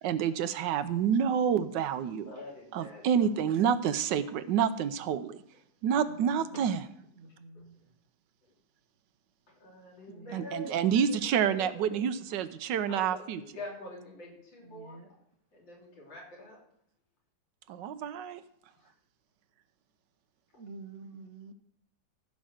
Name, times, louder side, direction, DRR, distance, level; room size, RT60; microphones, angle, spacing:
voice 1, 0.0-2.3 2.7-5.4 5.8-6.8 10.3-13.4 17.7-18.4, right 8 dB, 75° right, 13 dB, 1.3 m, -28 dB
voice 2, 2.3-3.5 7.5-7.6 9.5-12.2 12.9-15.0 15.5-16.6 18.8-18.9, left 2 dB, 85° left, -3 dB, 3.9 m, -46 dB
voice 3, 6.4-6.8 7.2-7.8 10.1-10.5 14.6-15.1 20.5-21.5, right 3 dB, 55° right, 6 dB, 0.8 m, -48 dB
15.0 x 5.3 x 6.4 m, 0.71 s
omnidirectional pair, 2.0 m